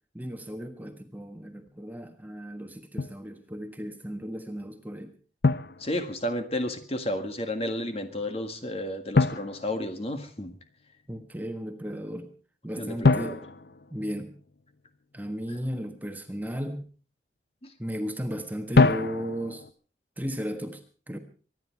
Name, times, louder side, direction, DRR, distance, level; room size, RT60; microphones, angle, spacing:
voice 1, 0.1-5.1 11.1-12.3 12.6-13.4 13.9-14.3 15.1-16.9 17.8-19.6 20.2-21.2, equal, 10° right, 6 dB, 1.4 m, -35 dB
Drum, 3.0-3.3 5.4-6.6 9.1-10.6 13.0-14.7 18.7-19.7, left 3 dB, 60° left, 0.7 m, -26 dB
voice 2, 5.8-10.5 12.8-13.4 17.6-17.7, left 1 dB, 35° left, 7 dB, 1.7 m, -32 dB
24.5 x 10.5 x 4.6 m, 0.39 s
head